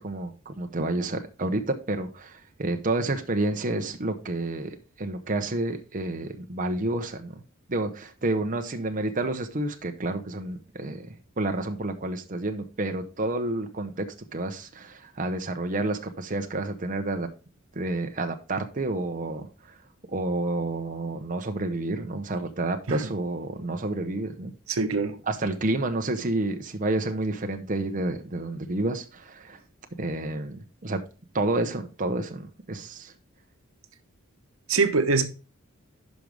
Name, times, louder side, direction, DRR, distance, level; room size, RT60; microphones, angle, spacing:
voice 1, 0.0-7.4 7.7-11.1 11.4-17.3 17.7-19.7 20.1-24.5 25.3-29.6 30.0-31.0 31.3-33.1, right 2 dB, 40° right, 0.8 m, -29 dB
voice 2, 24.7-25.2 34.7-35.3, right 4 dB, 85° right, 1.0 m, -23 dB
11.0 x 5.2 x 3.4 m
head